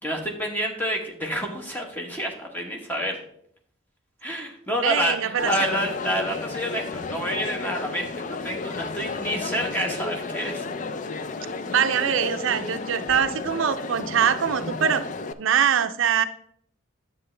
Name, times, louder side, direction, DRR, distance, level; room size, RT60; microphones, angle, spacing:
voice 1, 0.0-3.2 4.2-10.6, equal, 10° left, 1 dB, 1.1 m, -28 dB
voice 2, 4.8-5.5 11.7-15.0 15.4-16.3, right 8 dB, 75° right, 10 dB, 0.5 m, -23 dB
Crowd, 5.4-15.3, left 4 dB, 40° left, 0.3 m, -33 dB
9.5 x 7.0 x 3.2 m, 0.67 s
head